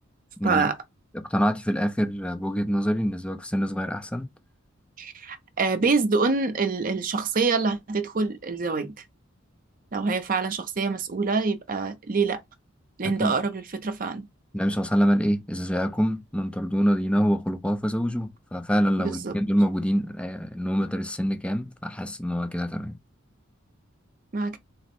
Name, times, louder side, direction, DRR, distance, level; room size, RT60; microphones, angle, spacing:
voice 1, 0.4-0.8 5.0-8.9 9.9-12.4 13.0-14.3 19.0-19.3 24.3-24.6, right 4 dB, 45° right, 0.6 m, -26 dB
voice 2, 1.1-4.3 13.0-13.3 14.5-22.9, equal, 5° left, 0.5 m, -25 dB
3.9 x 2.1 x 4.2 m
head